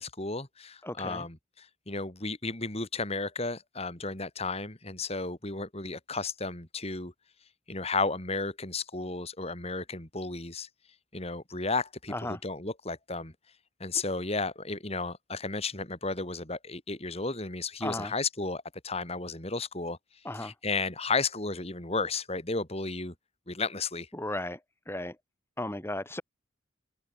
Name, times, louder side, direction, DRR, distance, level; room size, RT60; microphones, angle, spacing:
voice 1, 0.0-7.1 7.7-10.7 11.1-13.3 13.8-20.0 20.3-23.1 23.5-24.1, left 3 dB, 30° left, 3.9 m, -33 dB
voice 2, 0.8-1.2 12.1-12.4 17.8-18.1 20.3-20.5 24.1-24.6 24.9-25.1 25.6-26.2, left 1 dB, 15° left, 1.9 m, -35 dB
head